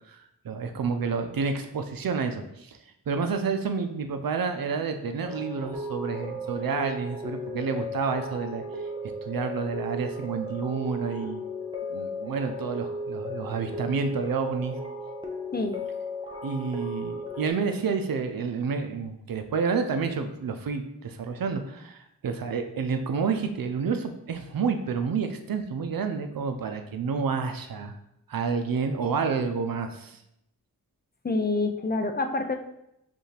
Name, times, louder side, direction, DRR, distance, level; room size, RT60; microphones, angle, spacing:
voice 1, 0.1-2.8 3.1-8.6 9.2-11.4 11.9-14.8 16.4-27.9 28.3-30.2, right 5 dB, 75° right, 7 dB, 0.6 m, -29 dB
sound 1, 5.2-17.5, equal, 15° right, 0.8 m, -35 dB
voice 2, 31.2-32.6, left 3 dB, 30° left, 6 dB, 0.5 m, -27 dB
5.4 x 2.5 x 3.3 m, 0.81 s
cardioid pair, 55°, 35 cm